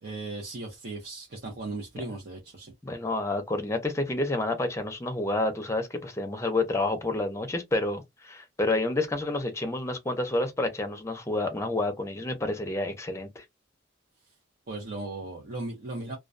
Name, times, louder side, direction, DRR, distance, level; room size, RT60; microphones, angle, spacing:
voice 1, 0.0-2.7 14.7-16.2, right 2 dB, 55° right, 0.7 m, -37 dB
voice 2, 2.8-13.4, left 2 dB, 15° left, 0.5 m, -29 dB
2.2 x 2.2 x 2.5 m
head